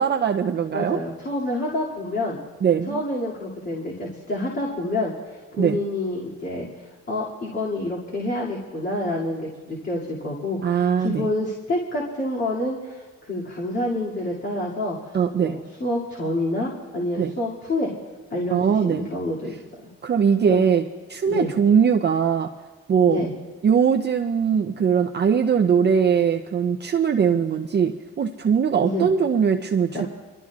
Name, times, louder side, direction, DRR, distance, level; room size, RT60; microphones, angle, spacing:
voice 1, 0.0-1.0 2.6-3.0 5.5-5.8 10.6-11.3 15.1-15.6 17.2-17.3 18.5-19.1 20.0-22.5 22.9-23.2 23.6-30.1, right 7 dB, 35° right, 3 dB, 0.6 m, -21 dB
voice 2, 0.7-2.4 2.9-17.9 18.3-19.9 20.5-20.6 21.3-21.5 23.1-23.3 28.8-29.1 29.9-30.1, left 1 dB, 35° left, -5 dB, 2.5 m, -28 dB
26.0 x 13.0 x 2.4 m, 1.3 s
cardioid pair, 90°, 30 cm